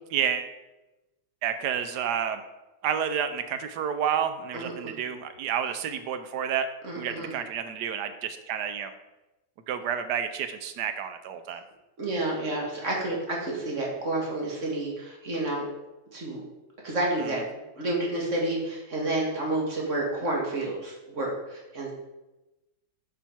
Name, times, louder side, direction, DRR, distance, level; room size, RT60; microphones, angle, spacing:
voice 1, 0.1-0.5 1.4-2.4 2.8-6.7 7.0-8.9 9.7-11.6, right 8 dB, 70° right, 9 dB, 1.2 m, -30 dB
voice 2, 4.5-4.9 6.8-7.3 12.0-15.7 16.1-16.4 16.8-17.4 17.8-21.9, right 2 dB, 40° right, -2 dB, 1.9 m, -30 dB
8.9 x 4.9 x 4.4 m, 1.0 s
omnidirectional pair, 2.1 m